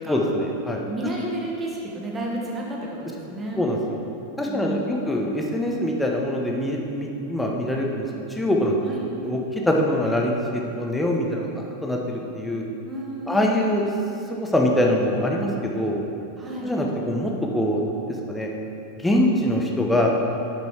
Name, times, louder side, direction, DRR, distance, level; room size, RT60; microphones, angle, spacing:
voice 1, 0.1-0.8 3.6-3.8 4.4-8.8 9.2-12.7 13.3-13.9 14.3-16.0 16.6-17.8 18.3-18.5 19.0-20.1, left 1 dB, 5° left, -1 dB, 1.1 m, -24 dB
voice 2, 0.9-3.7 4.5-5.0 8.8-9.1 12.8-13.5 16.4-16.7, right 1 dB, 15° right, -3 dB, 1.6 m, -31 dB
8.6 x 6.1 x 4.6 m, 2.8 s
figure-of-eight pair, 90°, 0 cm